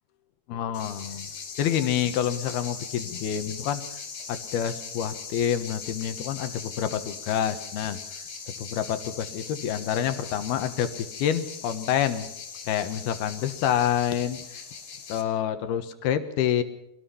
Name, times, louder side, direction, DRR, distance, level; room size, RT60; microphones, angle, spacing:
voice 1, 0.5-1.3 1.6-3.8 4.3-8.0 8.6-12.3 12.7-14.6 15.1-16.6, left 9 dB, 75° left, 10 dB, 3.2 m, -27 dB
sound 1, 0.7-15.2, left 6 dB, 55° left, 4.7 m, -40 dB
25.0 x 18.0 x 5.8 m, 0.79 s
omnidirectional pair, 4.7 m